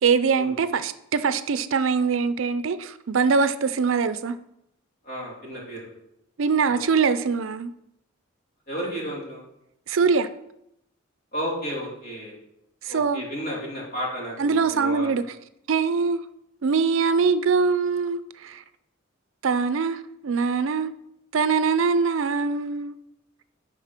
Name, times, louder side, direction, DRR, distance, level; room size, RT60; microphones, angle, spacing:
voice 1, 0.0-4.4 6.4-7.7 9.9-10.3 12.8-13.2 14.4-15.2 15.7-16.2 16.6-18.6 19.4-20.9 21.3-22.9, right 5 dB, 70° right, 0.5 m, -23 dB
voice 2, 5.0-5.9 6.6-6.8 8.7-9.4 11.3-12.3 12.9-15.2, equal, 50° left, 3.2 m, -33 dB
8.3 x 5.0 x 5.9 m
head